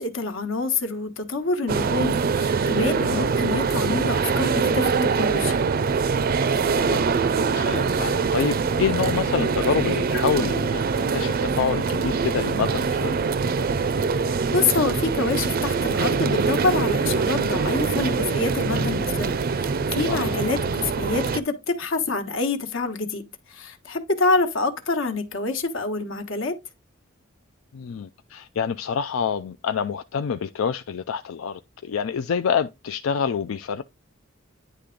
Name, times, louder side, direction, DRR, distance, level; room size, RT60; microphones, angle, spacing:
voice 1, 0.0-5.6 14.1-14.2 14.5-26.6, left 3 dB, 70° left, 1.2 m, -26 dB
sound 1, 1.7-21.4, right 5 dB, 45° right, 0.4 m, -23 dB
voice 2, 3.0-3.3 6.7-10.8 11.1-13.2 20.1-20.4 27.7-33.8, left 6 dB, 90° left, 0.4 m, -27 dB
9.8 x 3.3 x 3.8 m
head